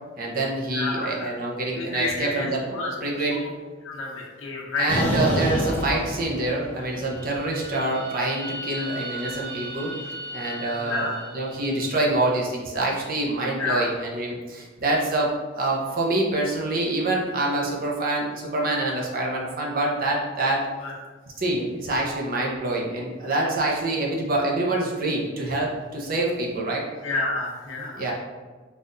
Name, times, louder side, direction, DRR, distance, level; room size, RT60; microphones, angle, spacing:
voice 1, 0.2-3.4 4.8-9.9 10.3-20.6 21.4-26.8 27.9-28.1, right 2 dB, 50° right, -2 dB, 0.7 m, -26 dB
voice 2, 0.7-1.3 1.8-2.5 2.7-2.9 3.3-3.5 3.8-4.9 10.8-11.1 13.6-13.9 20.8-21.0 27.0-28.1, left 3 dB, 85° left, -4 dB, 1.0 m, -29 dB
sound 1, 4.9-6.8 7.2-11.5, equal, 10° left, 1.1 m, -31 dB
4.1 x 2.5 x 3.8 m, 1.4 s
head